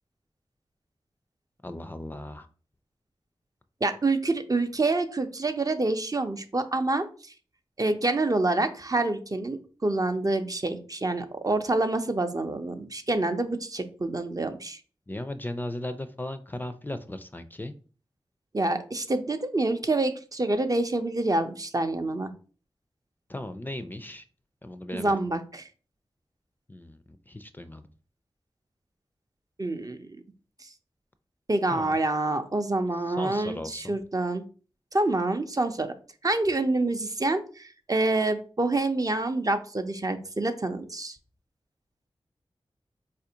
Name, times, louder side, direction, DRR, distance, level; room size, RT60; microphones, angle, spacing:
voice 1, 1.6-2.5 15.1-17.7 23.3-24.2 24.6-25.1 26.7-27.9 31.7-32.0 33.0-34.0, left 1 dB, 20° left, 10 dB, 0.4 m, -37 dB
voice 2, 3.8-7.1 7.8-14.8 18.5-22.3 24.9-25.7 29.6-30.1 31.5-34.4 34.9-35.9 36.2-41.2, right 2 dB, 35° right, 8 dB, 0.5 m, -27 dB
4.1 x 2.5 x 2.8 m, 0.39 s
cardioid pair, 40°, 10 cm